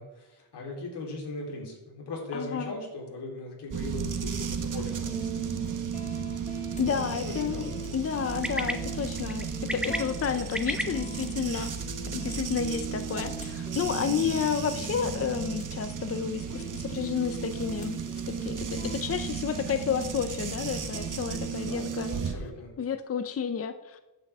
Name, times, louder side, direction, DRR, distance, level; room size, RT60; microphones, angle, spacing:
voice 1, 0.0-5.8 7.1-7.8 21.6-22.7, left 2 dB, 80° left, -1 dB, 3.8 m, -39 dB
voice 2, 2.3-2.7 6.8-11.7 12.1-22.1 22.8-24.0, left 7 dB, 35° left, 10 dB, 0.6 m, -31 dB
sound 1, 3.7-22.3, right 7 dB, 50° right, 1.3 m, -34 dB
sound 2, 4.7-22.5, right 1 dB, 20° left, 2.0 m, -43 dB
sound 3, 8.4-17.2, equal, ahead, 1.1 m, -41 dB
14.5 x 9.0 x 3.6 m, 1.1 s
cardioid pair, 110°, 40 cm